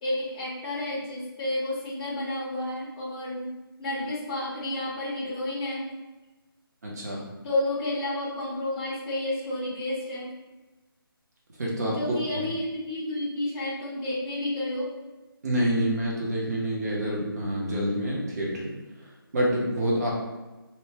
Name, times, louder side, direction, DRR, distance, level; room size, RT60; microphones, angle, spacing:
voice 1, 0.0-3.5 3.8-5.9 7.4-10.3 11.9-14.9, left 1 dB, 15° left, -6 dB, 0.4 m, -31 dB
voice 2, 6.8-7.3 11.6-12.2 15.4-18.7 19.3-20.1, right 1 dB, 45° right, -3 dB, 0.8 m, -27 dB
2.9 x 2.1 x 2.8 m, 1.1 s
figure-of-eight pair, 165°, 12 cm